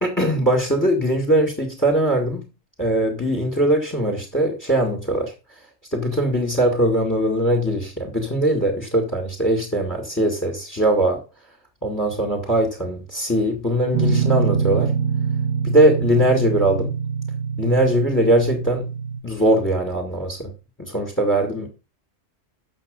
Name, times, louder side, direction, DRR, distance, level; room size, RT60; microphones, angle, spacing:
voice 1, 0.0-2.5 2.8-5.3 5.9-11.2 11.8-14.9 15.6-16.9 17.6-18.9 19.2-20.5 20.8-21.7, right 1 dB, 15° left, 2.2 m, -21 dB
Guitar, 13.9-19.2, right 7 dB, 65° right, 1.6 m, -24 dB
8.2 x 6.8 x 5.3 m
omnidirectional pair, 1.3 m